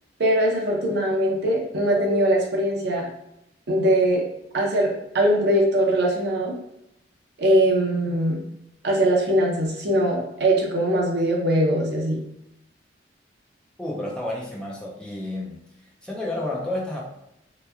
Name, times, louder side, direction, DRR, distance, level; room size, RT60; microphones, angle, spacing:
voice 1, 0.2-3.1 3.7-4.2 4.5-6.5 7.4-8.4 8.8-12.2, right 1 dB, 65° right, -1 dB, 0.6 m, -21 dB
voice 2, 13.8-15.6 16.0-17.0, left 1 dB, 5° left, -4 dB, 0.4 m, -30 dB
2.9 x 2.1 x 2.3 m, 0.82 s
head